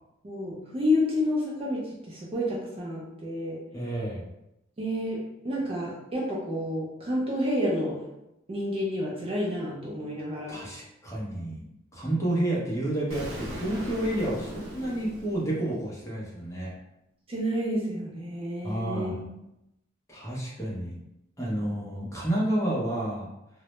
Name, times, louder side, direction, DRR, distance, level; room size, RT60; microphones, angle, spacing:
voice 1, 0.2-3.6 4.8-8.0 8.5-10.6 17.3-19.4, left 1 dB, 30° right, -4 dB, 0.4 m, -30 dB
voice 2, 3.7-4.3 10.5-11.6 11.9-16.7 18.6-19.3 20.1-20.9 21.4-23.3, right 1 dB, 15° left, -5 dB, 0.6 m, -30 dB
Explosion, 13.1-16.0, equal, 80° right, 0.6 m, -39 dB
2.1 x 2.0 x 2.9 m, 0.87 s
head